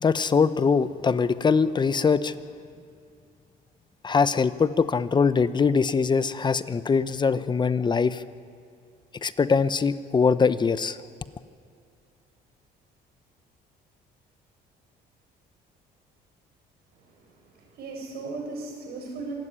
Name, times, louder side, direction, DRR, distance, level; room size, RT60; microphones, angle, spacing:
voice 1, 0.0-2.3 4.0-8.2 9.2-11.0, left 5 dB, 25° left, 14 dB, 0.7 m, -22 dB
voice 2, 16.9-19.3, right 3 dB, 70° right, 1 dB, 7.5 m, -37 dB
26.0 x 12.5 x 9.9 m, 2.4 s
cardioid pair, 110°, 17 cm